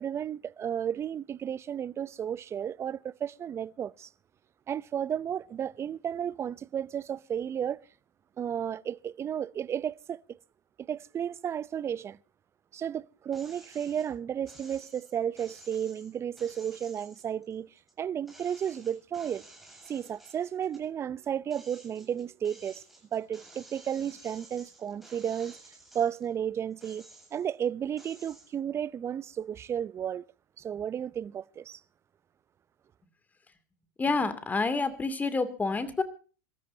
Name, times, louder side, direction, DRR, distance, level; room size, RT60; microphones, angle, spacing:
voice 1, 0.0-4.1 4.7-7.8 8.4-10.4 10.9-12.2 12.7-17.7 18.0-19.4 19.9-22.8 23.1-25.6 25.9-30.2 30.6-31.8, right 9 dB, 30° right, 0.6 m, -33 dB
sound 1, 13.3-14.1 14.5-17.9 18.3-20.9 21.3-26.3 26.7-27.5 28.0-28.5, right 2 dB, ahead, 7.7 m, -53 dB
voice 2, 34.0-36.0, left 3 dB, 15° left, 2.6 m, -28 dB
26.0 x 13.5 x 2.8 m
hypercardioid pair, 90°, 9 cm